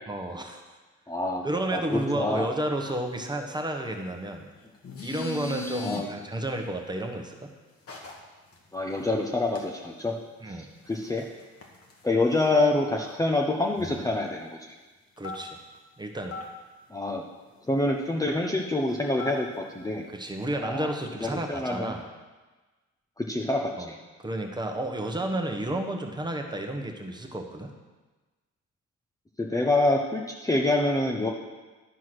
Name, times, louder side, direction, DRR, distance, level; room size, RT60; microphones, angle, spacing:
voice 1, 0.1-0.8 1.4-4.5 5.0-7.5 10.4-10.7 15.2-15.6 16.0-16.4 20.1-22.1 23.8-23.9 24.2-27.7, right 1 dB, 15° right, 3 dB, 1.2 m, -31 dB
voice 2, 1.1-1.4 1.7-2.5 5.8-6.1 8.7-10.1 10.5-10.6 10.9-11.2 12.0-14.8 16.9-17.2 17.7-20.1 20.6-20.9 21.2-22.0 23.2-24.0 29.4-31.3, left 2 dB, 10° left, 0 dB, 0.8 m, -26 dB
sound 1, 4.7-6.0 7.9-8.2 8.5-8.6 8.9-9.1 9.5-9.6 10.0-10.1 10.8-12.1 12.5-12.6 12.7-12.8 13.0-13.1 13.8-14.2 15.2-15.8 16.3-16.4 18.9-19.5, left 3 dB, 50° left, 1.7 m, -38 dB
11.0 x 4.7 x 6.1 m, 1.2 s
cardioid pair, 90°, 30 cm